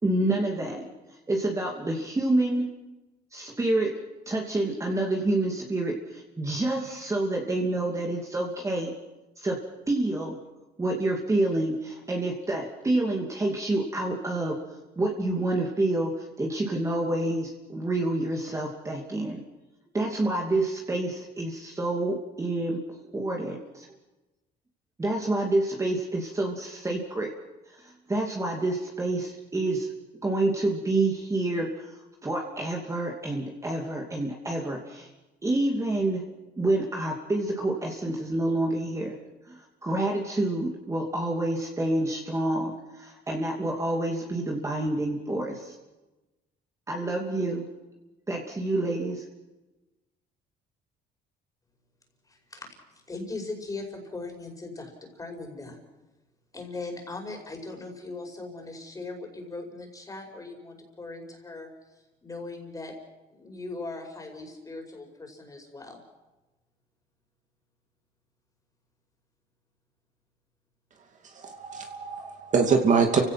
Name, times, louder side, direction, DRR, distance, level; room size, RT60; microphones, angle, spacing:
voice 1, 0.0-0.9 1.3-2.7 3.3-8.9 9.4-9.6 9.9-10.4 10.8-14.6 15.0-19.4 19.9-22.8 23.1-23.9 25.0-27.3 27.8-29.9 30.2-35.1 35.4-36.2 36.6-39.2 39.5-45.7 46.9-47.6 48.3-49.2, right 2 dB, 20° right, 0 dB, 2.7 m, -28 dB
voice 2, 52.3-55.8 56.5-61.7 62.2-62.9 63.3-66.0, left 3 dB, 20° left, 3 dB, 5.3 m, -39 dB
voice 3, 71.4-73.2, right 5 dB, 45° right, 4 dB, 2.6 m, -24 dB
29.5 x 16.5 x 6.0 m, 1.1 s
cardioid pair, 110°, 17 cm